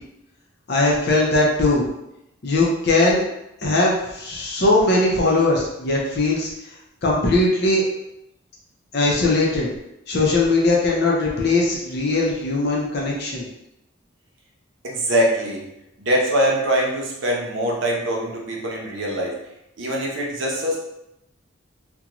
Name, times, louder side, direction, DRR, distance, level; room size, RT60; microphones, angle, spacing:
voice 1, 0.7-1.9 2.4-3.2 3.6-6.5 7.0-7.8 8.9-9.7 10.1-13.5, left 2 dB, 50° left, -3 dB, 0.5 m, -20 dB
voice 2, 14.8-15.6 16.0-19.4 19.8-20.8, right 1 dB, 65° right, -2 dB, 0.6 m, -23 dB
2.5 x 2.2 x 2.9 m, 0.86 s
head